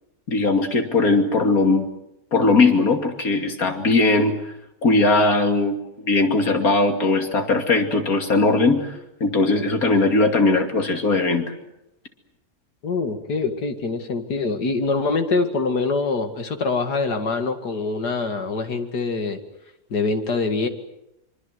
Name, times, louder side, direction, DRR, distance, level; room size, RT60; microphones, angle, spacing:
voice 1, 0.3-1.9 2.3-4.4 4.8-11.5, left 3 dB, 60° left, 5 dB, 3.1 m, -19 dB
voice 2, 12.8-19.4 19.9-20.7, left 3 dB, 80° left, 7 dB, 2.7 m, -24 dB
25.0 x 25.0 x 8.0 m, 0.86 s
omnidirectional pair, 1.7 m